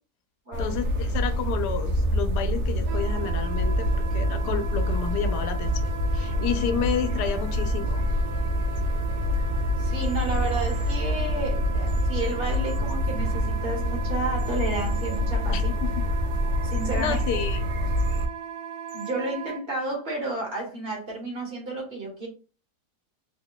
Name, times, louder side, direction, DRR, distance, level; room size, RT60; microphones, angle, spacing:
sound 1, 0.5-18.2, equal, 60° right, 0.8 m, -26 dB
voice 1, 0.6-8.0 15.5-16.1 17.0-17.6, left 8 dB, 85° left, 1.2 m, -31 dB
Wind instrument woodwind instrument, 2.8-19.6, right 7 dB, 90° right, 1.2 m, -38 dB
sound 2, 8.7-8.8 10.0-11.0 11.9-12.9 14.3-15.2 16.7-17.3 18.0-18.2 18.9-19.1, equal, 35° left, 0.9 m, -50 dB
voice 2, 9.8-15.7 16.6-17.4 18.9-22.3, right 2 dB, 40° right, 1.3 m, -32 dB
3.1 x 2.2 x 3.7 m
omnidirectional pair, 1.7 m